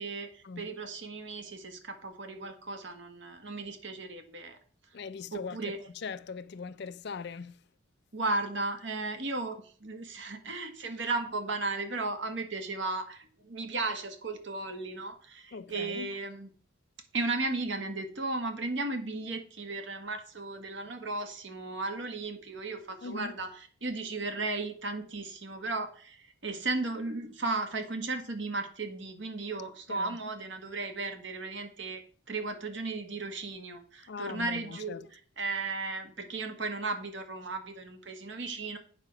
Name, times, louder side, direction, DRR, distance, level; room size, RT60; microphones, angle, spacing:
voice 1, 0.0-4.6 5.3-5.8 8.1-16.5 17.1-32.0 32.3-38.8, right 3 dB, 60° right, 1.5 m, -35 dB
voice 2, 4.9-5.7 6.0-7.5 15.5-16.1 23.0-23.4 29.9-30.2 34.1-35.1, left 5 dB, 55° left, 0.4 m, -40 dB
8.8 x 4.9 x 5.9 m
head